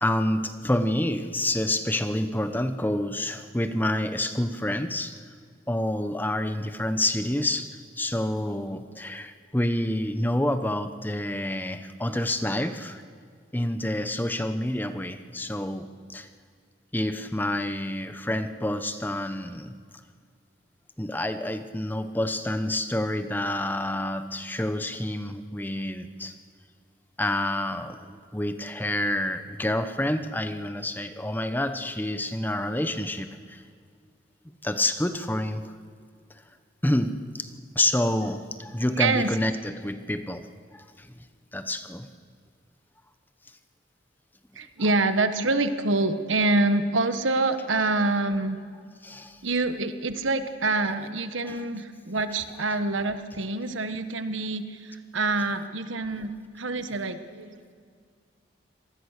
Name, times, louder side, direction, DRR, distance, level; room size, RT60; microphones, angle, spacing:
voice 1, 0.0-5.1 5.7-13.0 13.5-16.3 16.9-19.7 21.0-26.3 27.2-33.6 34.6-35.7 36.8-37.5 37.7-40.5 40.7-41.3 41.5-42.1 49.0-49.4 51.5-51.6, left 1 dB, 10° left, 9 dB, 0.9 m, -28 dB
voice 2, 39.0-39.3 44.5-48.6 49.4-57.7, right 2 dB, 90° right, 10 dB, 1.4 m, -26 dB
25.5 x 19.5 x 6.6 m, 2.1 s
head